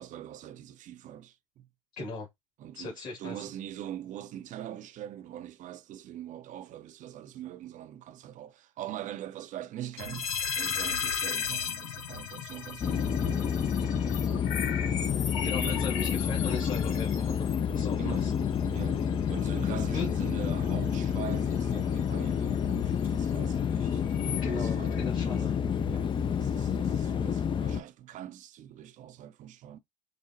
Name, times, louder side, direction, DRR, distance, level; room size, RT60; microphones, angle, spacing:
voice 1, 0.0-1.7 2.6-13.8 15.0-15.8 18.0-18.3 18.7-19.0 19.3-25.0 25.3-25.5 25.9-29.8, right 11 dB, 45° right, 0.6 m, -43 dB
voice 2, 2.0-2.3 2.7-3.4 15.4-18.3 19.9-20.1 24.4-25.6, left 3 dB, 50° left, 2.2 m, -38 dB
sound 1, 10.0-27.0, left 7 dB, 85° left, 0.7 m, -38 dB
sound 2, 12.8-27.8, left 7 dB, 30° left, 0.4 m, -29 dB
5.1 x 2.1 x 2.7 m
hypercardioid pair, 80°, 17 cm